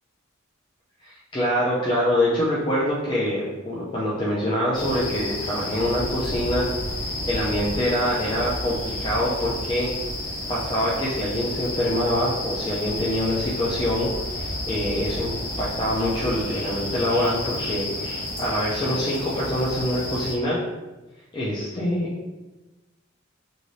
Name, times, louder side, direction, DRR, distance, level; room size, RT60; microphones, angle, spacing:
voice 1, 1.0-6.7 7.2-9.9 10.5-15.3 15.6-20.6 21.3-22.1, left 1 dB, 25° left, -7 dB, 0.4 m, -25 dB
sound 1, 4.7-20.3, left 1 dB, 80° left, 1.3 m, -31 dB
3.1 x 2.6 x 2.6 m, 1.1 s
head